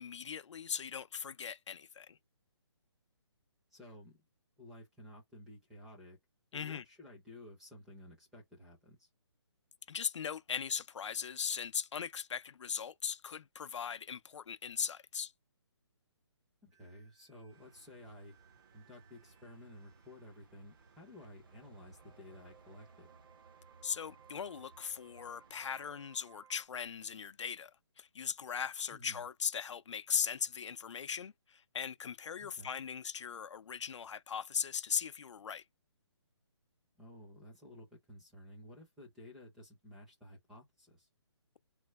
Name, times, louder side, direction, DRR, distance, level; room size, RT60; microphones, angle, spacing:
voice 1, 0.0-2.2 6.5-6.8 9.9-15.3 23.8-35.6, left 7 dB, 85° left, 0.4 m, -39 dB
voice 2, 3.7-4.2 4.6-6.2 6.5-9.1 16.6-18.4 18.7-23.1 28.9-29.2 32.4-32.7 37.0-41.1, left 1 dB, 5° right, 0.5 m, -54 dB
sound 1, 16.7-26.6, right 9 dB, 85° right, 1.1 m, -65 dB
sound 2, 17.5-25.9, right 4 dB, 50° right, 0.7 m, -63 dB
3.1 x 2.0 x 3.4 m
hypercardioid pair, 170°, 15 cm